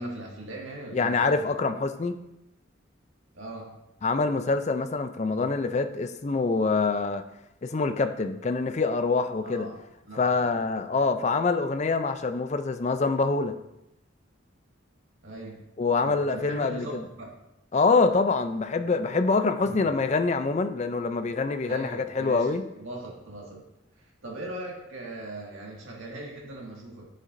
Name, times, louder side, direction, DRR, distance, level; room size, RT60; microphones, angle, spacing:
voice 1, 0.0-1.3 3.3-3.8 9.4-9.8 10.0-10.6 15.2-15.6 16.0-17.3 19.6-19.8 21.7-22.5 22.8-23.6 24.0-27.1, right 1 dB, 80° right, -2 dB, 1.9 m, -39 dB
voice 2, 0.9-2.2 4.0-7.2 7.6-9.7 10.2-13.5 15.8-17.0 17.7-22.6, left 4 dB, 35° left, 9 dB, 0.4 m, -25 dB
10.5 x 6.5 x 2.6 m, 0.89 s
head